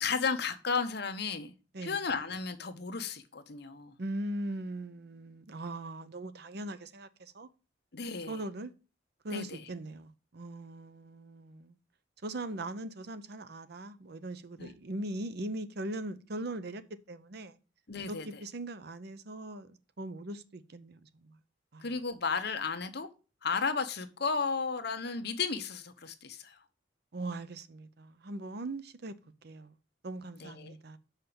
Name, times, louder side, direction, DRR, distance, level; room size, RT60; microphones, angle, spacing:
voice 1, 0.0-1.5 1.8-3.9 7.9-8.4 9.3-9.7 14.6-14.7 17.9-18.3 21.8-23.1 23.4-26.6 30.4-30.7, left 5 dB, 60° left, 1.0 m, -34 dB
voice 2, 4.0-7.5 8.3-8.7 9.2-11.8 12.2-16.8 17.1-17.6 18.1-21.4 21.7-21.9 27.1-29.1 29.4-29.7 30.0-31.0, right 1 dB, 55° right, 0.7 m, -40 dB
5.7 x 5.7 x 6.8 m
head